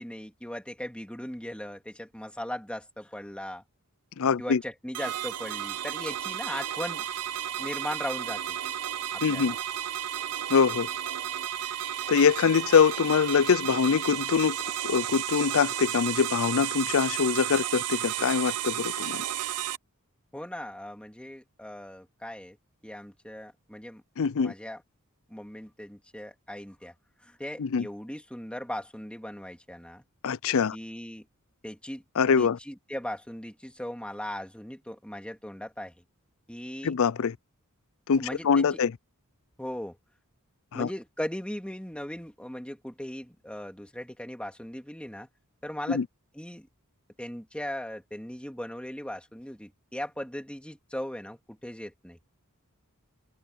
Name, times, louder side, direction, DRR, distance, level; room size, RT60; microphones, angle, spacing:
voice 1, 0.0-3.6 4.4-7.1 7.6-8.6 9.1-9.5 20.3-22.6 22.8-24.0 24.4-24.8 25.3-26.9 27.2-30.0 30.7-31.3 31.6-32.0 32.4-35.9 36.5-36.9 38.1-38.8 39.6-40.0 40.7-45.3 45.6-46.0 46.3-46.7 47.2-52.2, left 1 dB, 5° left, 2.7 m, -38 dB
voice 2, 4.2-4.6 9.2-9.5 10.5-10.9 12.1-14.6 14.8-19.2 24.2-24.5 27.6-27.9 30.2-30.8 32.2-32.6 36.8-37.4 38.1-38.9 40.7-40.9 45.9-46.0, left 6 dB, 65° left, 0.5 m, -24 dB
sound 1, 4.9-19.8, right 11 dB, 90° right, 0.6 m, -33 dB
open air
head